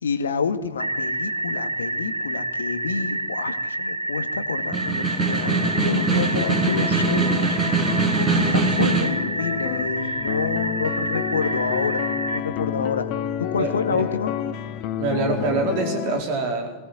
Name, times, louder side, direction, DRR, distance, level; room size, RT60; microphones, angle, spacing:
voice 1, 0.0-13.1 13.4-14.3, left 5 dB, 70° left, 10 dB, 2.0 m, -28 dB
sound 1, 0.8-12.4, right 2 dB, 85° right, 1.2 m, -28 dB
Snare drum, 4.6-9.2, right 4 dB, 25° right, 6.6 m, -23 dB
sound 2, 5.5-16.2, left 10 dB, 40° left, 1.7 m, -30 dB
voice 2, 13.6-14.1 15.0-16.8, right 3 dB, 50° right, 3 dB, 4.7 m, -25 dB
24.0 x 18.5 x 9.6 m, 1.0 s
figure-of-eight pair, 90°, 0 cm